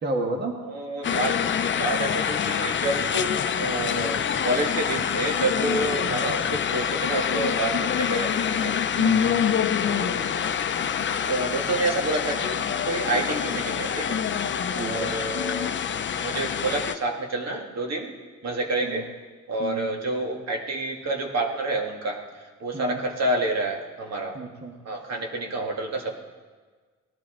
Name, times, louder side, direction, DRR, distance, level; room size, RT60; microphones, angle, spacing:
voice 1, 0.0-0.6 8.9-9.4 14.8-15.1 18.8-19.0 19.6-19.9 22.7-23.0 24.3-24.7, right 3 dB, 35° right, 2 dB, 1.5 m, -31 dB
voice 2, 0.6-1.4 1.7-8.7 9.8-10.2 11.3-14.2 14.7-15.7 16.2-18.1 18.4-19.1 19.5-24.4 24.9-26.2, right 2 dB, 60° right, 1 dB, 1.8 m, -29 dB
sound 1, 1.0-16.9, left 8 dB, 40° left, 0.6 m, -26 dB
18.0 x 11.0 x 3.8 m, 1.4 s
cardioid pair, 90°, 30 cm